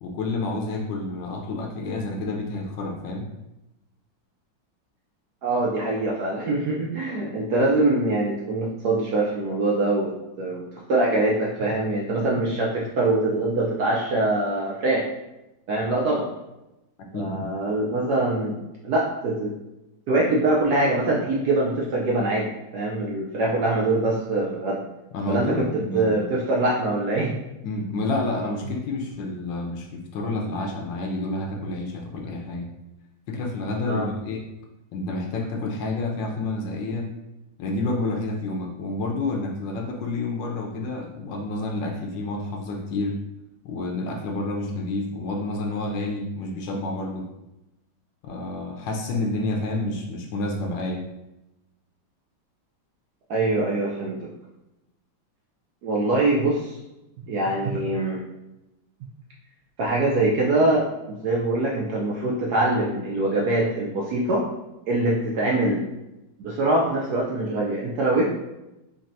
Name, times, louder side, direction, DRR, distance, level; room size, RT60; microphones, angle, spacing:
voice 1, 0.0-3.3 17.1-17.5 25.1-26.2 27.6-32.7 33.3-34.5 34.9-37.1 37.6-43.2 43.6-47.3 48.2-51.0, left 2 dB, 75° left, 2 dB, 1.2 m, -29 dB
voice 2, 5.4-10.1 10.4-15.0 15.7-16.3 17.1-19.5 20.1-24.8 25.3-25.7 25.9-27.3 33.9-34.1 53.3-54.3 55.8-56.8 57.3-58.2 59.8-60.9 61.2-64.4 64.9-65.8 66.4-68.2, right 2 dB, 70° right, -3 dB, 0.9 m, -23 dB
5.2 x 2.8 x 2.6 m, 0.95 s
omnidirectional pair, 2.2 m